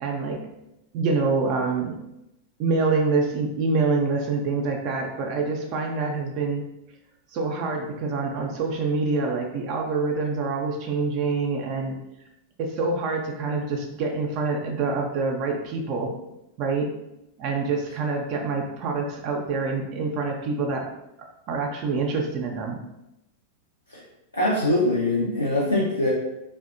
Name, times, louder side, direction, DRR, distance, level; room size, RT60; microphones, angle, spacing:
voice 1, 0.0-0.4 0.9-2.0 2.6-6.6 7.3-12.0 12.6-16.1 16.6-16.9 17.4-20.9 21.5-22.8, right 4 dB, 40° right, 1 dB, 0.3 m, -26 dB
voice 2, 24.3-26.1, left 1 dB, 80° left, -5 dB, 0.5 m, -23 dB
2.6 x 2.1 x 2.4 m, 0.89 s
figure-of-eight pair, 90°, 0 cm